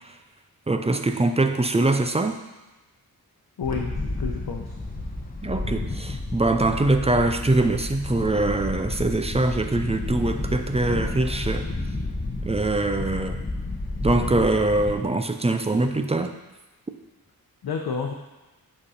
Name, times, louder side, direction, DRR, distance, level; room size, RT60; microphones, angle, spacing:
voice 1, 0.7-2.4 5.4-11.7 12.4-13.4 14.0-16.4, right 2 dB, 15° right, 7 dB, 0.5 m, -23 dB
voice 2, 3.6-4.8 17.6-18.1, left 5 dB, 85° left, 1 dB, 0.8 m, -30 dB
Wind, 3.6-14.9, left 2 dB, 20° left, 1.1 m, -31 dB
7.9 x 5.3 x 4.2 m, 1.1 s
wide cardioid pair, 105°, 37 cm